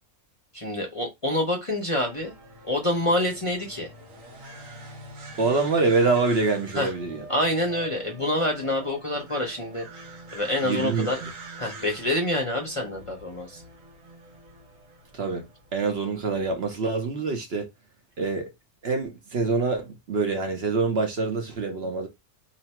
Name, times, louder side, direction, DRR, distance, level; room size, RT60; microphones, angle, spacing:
voice 1, 0.5-2.3 2.6-3.9 6.7-6.9 7.3-9.9 10.3-11.2 11.6-13.6, left 1 dB, 30° left, 0.8 m, -27 dB
sound 1, 2.0-16.6, right 2 dB, 75° right, 1.4 m, -45 dB
voice 2, 5.4-7.2 10.6-11.3 15.1-15.5 15.7-17.7 18.2-18.5 18.8-22.1, right 4 dB, 55° right, 1.0 m, -25 dB
2.9 x 2.6 x 4.3 m
omnidirectional pair, 1.4 m